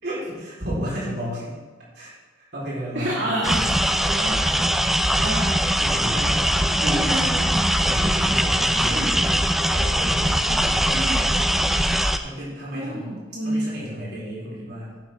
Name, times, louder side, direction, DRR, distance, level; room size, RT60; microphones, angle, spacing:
voice 1, 0.0-1.5 1.9-2.1 2.4-3.6 4.2-4.9 5.8-7.1 7.8-9.3 9.7-11.1 12.2-13.1 13.4-14.9, equal, 60° right, -6 dB, 4.1 m, -33 dB
voice 2, 2.9-4.4 5.1-5.6 6.8-7.3 8.8-9.1 10.9-11.3 12.7-13.7, right 1 dB, 75° right, -5 dB, 2.3 m, -29 dB
sound 1, 3.4-12.2, equal, ahead, 0.4 m, -21 dB
11.5 x 10.5 x 3.7 m, 1.3 s
head